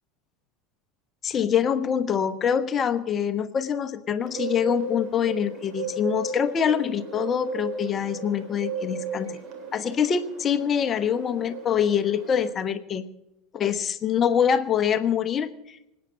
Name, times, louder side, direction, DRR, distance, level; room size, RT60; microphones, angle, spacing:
voice 1, 1.2-9.4 9.7-13.1 13.5-15.8, left 8 dB, 30° left, 11 dB, 1.1 m, -25 dB
Bird, 4.2-12.5, right 4 dB, 40° right, 3.7 m, -35 dB
25.5 x 8.9 x 5.5 m, 0.88 s
figure-of-eight pair, 75°, 0 cm